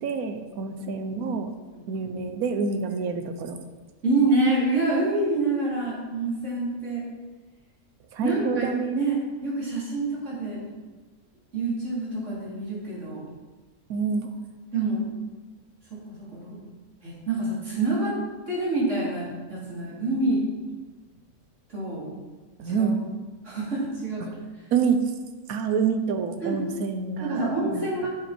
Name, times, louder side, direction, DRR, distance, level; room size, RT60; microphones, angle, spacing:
voice 1, 0.0-1.5 1.9-3.6 8.1-9.0 13.9-14.3 22.6-23.0 24.7-25.0 25.5-27.9, right 5 dB, 75° right, 7 dB, 1.3 m, -27 dB
voice 2, 4.0-7.0 8.2-10.7 11.5-13.2 14.7-15.0 15.9-16.6 17.0-18.2 18.5-20.4 21.7-22.1 22.6-22.9 23.4-24.3 26.4-26.6 27.2-28.1, right 2 dB, 50° right, -7 dB, 4.1 m, -27 dB
9.2 x 8.2 x 4.4 m, 1.3 s
omnidirectional pair, 1.6 m